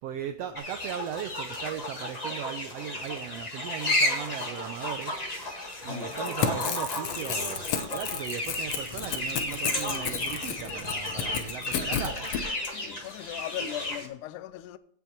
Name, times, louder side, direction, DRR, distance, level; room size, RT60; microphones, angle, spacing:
voice 1, 0.0-5.1 5.8-12.1, right 9 dB, 85° right, 1.4 m, -38 dB
sound 1, 0.6-14.1, left 1 dB, 20° left, 1.0 m, -33 dB
voice 2, 5.8-6.1 12.6-14.8, left 13 dB, 85° left, 2.1 m, -39 dB
Crackle / Tearing, 6.0-12.4, left 8 dB, 65° left, 1.7 m, -32 dB
16.0 x 5.6 x 4.5 m
omnidirectional pair, 3.5 m